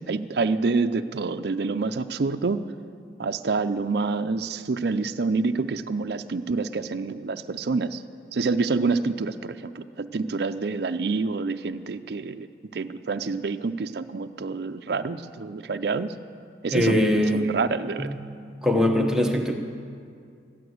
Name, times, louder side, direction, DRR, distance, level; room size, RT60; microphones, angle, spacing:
voice 1, 0.1-2.7 3.2-8.0 8.3-12.5 12.7-16.1 16.6-17.0 17.3-18.1, right 4 dB, 65° right, 9 dB, 0.5 m, -27 dB
voice 2, 16.7-17.6 18.0-18.2 18.6-19.5, left 1 dB, 5° right, 2 dB, 1.0 m, -22 dB
13.5 x 11.0 x 7.9 m, 2.3 s
head